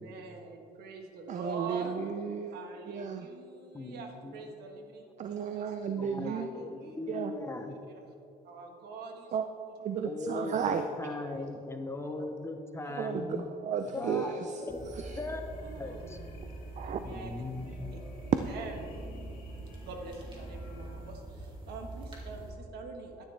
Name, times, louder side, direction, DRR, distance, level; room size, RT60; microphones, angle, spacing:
voice 1, 0.0-2.0 2.5-5.7 6.2-7.0 8.4-9.7 10.3-10.6 11.1-11.5 12.0-12.4 12.8-13.2 14.0-14.6 15.1-15.3 15.6-16.2 16.8-17.3 17.9-19.0 19.8-23.2, right 3 dB, 75° right, 3 dB, 1.5 m, -45 dB
voice 2, 1.3-2.6 2.9-3.3 5.2-6.5 7.1-7.3 9.3-9.5 9.8-10.9 12.8-14.6 15.0-15.2 16.8-17.0 18.3-18.4, right 7 dB, 45° right, 8 dB, 0.5 m, -33 dB
voice 3, 3.7-4.4 6.0-7.8 10.0-13.4 13.9-16.2 17.1-18.0, left 2 dB, 15° left, 6 dB, 0.7 m, -39 dB
sound 1, 13.9-21.1, left 2 dB, 55° left, 2.1 m, -54 dB
sound 2, 14.7-22.5, right 2 dB, 30° right, 2.5 m, -44 dB
11.5 x 10.5 x 3.4 m, 2.8 s
cardioid pair, 110°, 17 cm